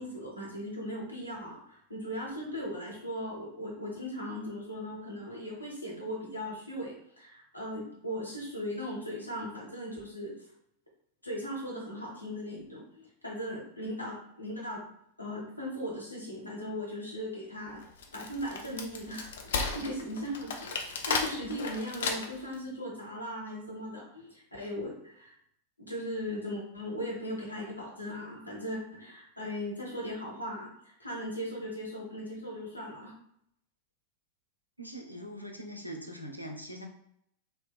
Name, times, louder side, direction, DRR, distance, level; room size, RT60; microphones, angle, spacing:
voice 1, 0.0-10.3 11.2-14.8 15.2-17.8 18.1-25.3 25.8-30.7 31.0-33.1, equal, 85° left, -4 dB, 0.8 m, -38 dB
Wood, 17.8-22.5, left 4 dB, 60° left, 0.3 m, -34 dB
voice 2, 34.8-36.9, equal, 90° right, 2 dB, 0.4 m, -42 dB
2.8 x 2.0 x 2.3 m, 0.71 s
figure-of-eight pair, 90°, 0 cm